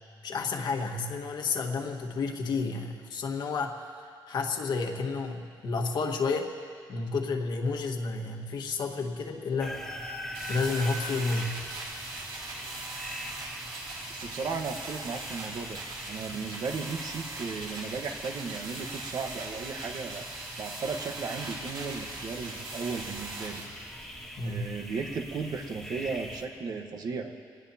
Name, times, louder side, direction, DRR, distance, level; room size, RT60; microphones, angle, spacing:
voice 1, 0.2-6.5 6.9-9.8 10.5-11.6 16.3-16.4 24.4-24.6, left 4 dB, 60° left, 2 dB, 1.5 m, -31 dB
sound 1, 9.6-26.5, equal, ahead, 1.9 m, -43 dB
sound 2, 10.3-23.6, right 2 dB, 70° right, 4.8 m, -40 dB
voice 2, 14.1-15.8 16.1-20.2 20.6-23.6 24.4-27.3, right 5 dB, 50° right, 4 dB, 1.3 m, -35 dB
26.0 x 19.0 x 2.8 m, 2.2 s
cardioid pair, 155°, 8 cm